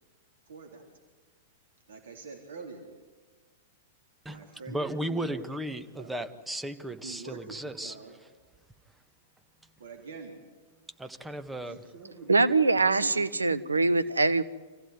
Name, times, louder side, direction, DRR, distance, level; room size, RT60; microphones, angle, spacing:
voice 1, 0.5-0.8 1.9-2.9 4.2-5.4 5.7-6.3 7.0-8.2 9.8-10.4 11.5-12.3 12.9-13.2 14.0-14.2, right 4 dB, 70° right, 2 dB, 3.7 m, -45 dB
voice 2, 4.2-7.9 11.0-11.8, right 1 dB, 5° right, 9 dB, 1.5 m, -35 dB
voice 3, 12.3-14.4, right 3 dB, 85° right, 14 dB, 1.0 m, -23 dB
27.5 x 15.5 x 9.8 m, 1.3 s
figure-of-eight pair, 100°, 0 cm